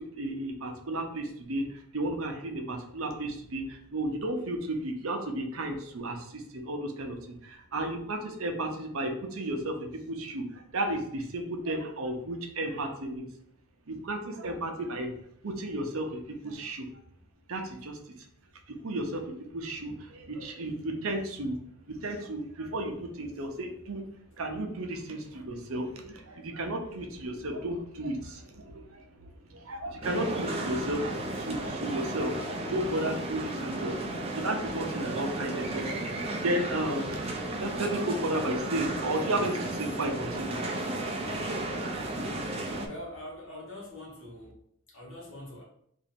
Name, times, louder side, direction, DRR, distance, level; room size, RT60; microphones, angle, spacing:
voice 1, 0.1-13.3 13.9-15.1 15.4-16.9 17.5-18.0 18.7-21.6 21.9-24.0 24.4-29.1 29.5-32.3 32.7-37.2 37.5-40.6, right 1 dB, 65° right, 3 dB, 0.7 m, -33 dB
sound 1, 30.0-42.9, right 1 dB, 25° right, 0.5 m, -34 dB
voice 2, 42.8-44.6 44.9-45.6, left 1 dB, 55° left, -3 dB, 1.3 m, -43 dB
3.0 x 2.7 x 4.3 m, 0.68 s
head